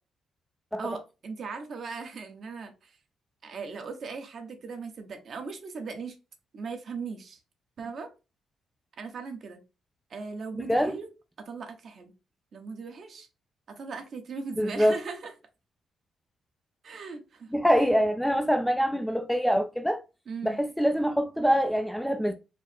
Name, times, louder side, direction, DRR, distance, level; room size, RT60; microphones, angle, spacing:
voice 1, 0.8-3.0 3.4-6.2 6.5-7.4 7.8-8.1 9.0-9.6 10.1-11.1 11.4-12.1 12.5-13.3 13.7-15.3 16.8-17.5 20.3-20.6, right 4 dB, 45° right, 1.0 m, -38 dB
voice 2, 10.5-10.9 14.6-15.0 17.5-20.0 20.4-22.3, equal, ahead, 0.4 m, -24 dB
4.6 x 2.0 x 4.3 m
cardioid pair, 155°, 0 cm